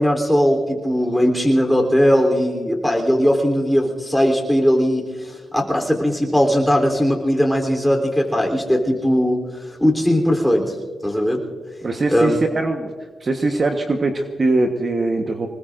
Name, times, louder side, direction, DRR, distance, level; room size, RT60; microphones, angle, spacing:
voice 1, 0.0-9.4 9.7-10.7 11.0-11.4 12.1-12.4, equal, ahead, 1 dB, 3.5 m, -19 dB
voice 2, 11.8-12.9 13.2-15.5, right 2 dB, 45° right, 4 dB, 1.2 m, -21 dB
25.0 x 20.0 x 2.6 m, 1.5 s
cardioid pair, 80°, 0 cm